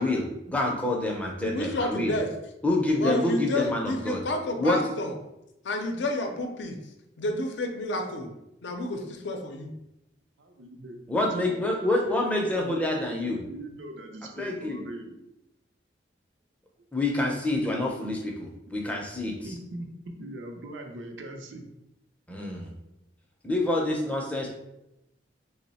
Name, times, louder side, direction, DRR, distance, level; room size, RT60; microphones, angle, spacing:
voice 1, 0.0-2.1 2.6-4.2 4.6-4.8 11.1-13.4 14.4-14.8 16.9-19.3 22.3-22.7 23.4-24.5, left 2 dB, 5° left, -1 dB, 0.4 m, -27 dB
voice 2, 1.4-2.3 3.0-5.1 5.6-6.8 7.2-8.3 8.6-9.7, left 1 dB, 75° left, 4 dB, 0.5 m, -30 dB
voice 3, 10.4-11.0 11.4-15.2 16.8-16.9 18.6-18.7 19.4-19.9 20.2-21.6, right 1 dB, 85° right, 3 dB, 0.5 m, -41 dB
3.0 x 2.1 x 4.0 m, 0.89 s
head